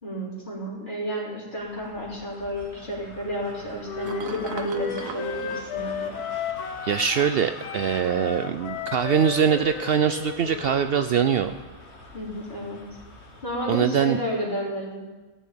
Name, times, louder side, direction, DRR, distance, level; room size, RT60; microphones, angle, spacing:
voice 1, 0.0-6.1 12.1-12.8 13.4-15.0, equal, 30° left, -5 dB, 3.8 m, -31 dB
sound 1, 1.6-13.7, left 2 dB, 45° left, 1.6 m, -45 dB
sound 2, 3.5-6.8 7.7-8.8 9.5-10.0 14.2-14.3, right 6 dB, 65° right, 1.3 m, -42 dB
Wind instrument woodwind instrument, 3.8-7.3 7.6-11.5, left 6 dB, 75° left, 1.4 m, -34 dB
voice 2, 6.8-11.5 13.7-14.2, right 8 dB, 90° right, 9 dB, 0.5 m, -23 dB
14.5 x 6.4 x 9.6 m, 1.3 s
omnidirectional pair, 1.6 m